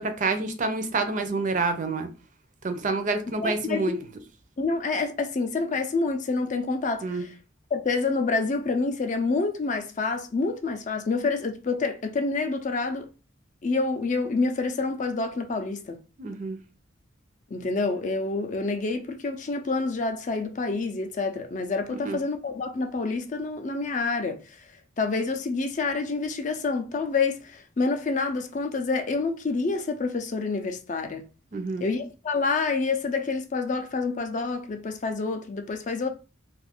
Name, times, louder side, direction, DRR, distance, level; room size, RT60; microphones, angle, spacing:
voice 1, 0.0-2.1 2.6-4.0 7.0-7.2 16.2-16.6 21.9-22.2 31.5-31.8, right 3 dB, 40° right, 0.4 m, -28 dB
voice 2, 3.4-3.9 4.6-7.3 7.7-13.1 13.6-16.0 17.5-24.4 25.0-31.3 31.8-36.1, left 3 dB, 40° left, 0.4 m, -27 dB
2.5 x 2.4 x 3.5 m
head